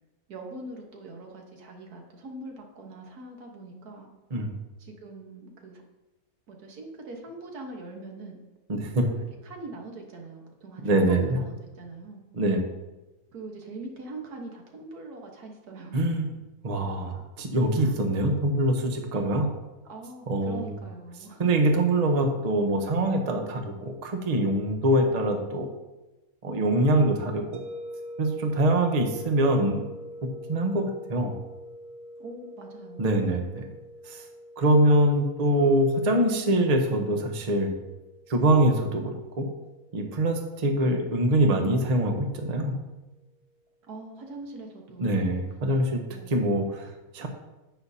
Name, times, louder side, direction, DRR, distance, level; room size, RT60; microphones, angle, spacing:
voice 1, 0.3-4.1 4.8-5.8 6.5-8.4 9.1-12.2 13.3-16.0 17.8-18.0 19.8-21.4 32.2-33.1 43.8-45.3 46.1-46.5, right 2 dB, 85° right, 1 dB, 1.8 m, -42 dB
voice 2, 8.7-9.0 10.8-11.4 12.3-12.6 15.9-16.3 16.6-19.5 20.3-20.8 21.4-25.7 26.4-27.6 28.2-29.9 30.5-31.3 33.0-33.7 34.0-34.2 34.6-37.7 38.3-39.5 39.9-42.7 45.0-46.0 46.3-47.3, right 1 dB, 30° right, 4 dB, 0.8 m, -24 dB
sound 1, 27.5-42.5, equal, 55° right, 1.1 m, -45 dB
9.7 x 8.1 x 2.8 m, 1.1 s
omnidirectional pair, 1.6 m